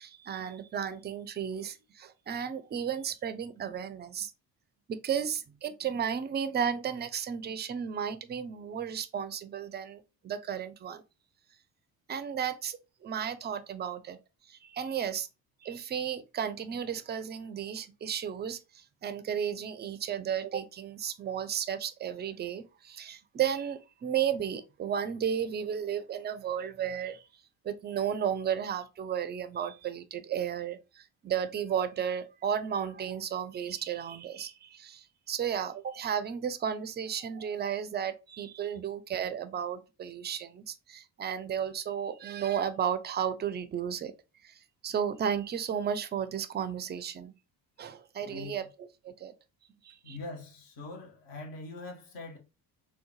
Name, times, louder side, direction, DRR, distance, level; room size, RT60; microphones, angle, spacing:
voice 1, 0.0-4.3 4.9-11.0 12.1-14.2 14.5-15.3 15.6-27.2 27.6-44.1 44.4-47.3 47.8-48.6 49.0-49.3 49.8-50.2, right 8 dB, 25° right, 0.3 m, -33 dB
voice 2, 48.2-48.7 50.0-52.4, left 2 dB, 60° left, 1.2 m, -43 dB
3.7 x 2.1 x 2.9 m
hypercardioid pair, 55°, 50 cm